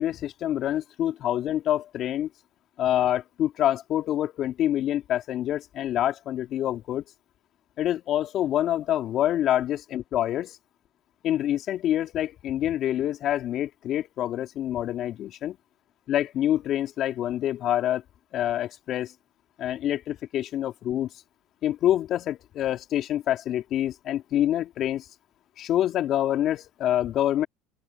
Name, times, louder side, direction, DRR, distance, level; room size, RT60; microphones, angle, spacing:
voice 1, 0.0-2.3 2.8-7.0 7.8-10.6 11.2-15.6 16.1-18.0 18.3-19.1 19.6-21.1 21.6-25.1 25.6-27.5, left 12 dB, 55° left, 2.9 m, -26 dB
open air
hypercardioid pair, 80°, 0 cm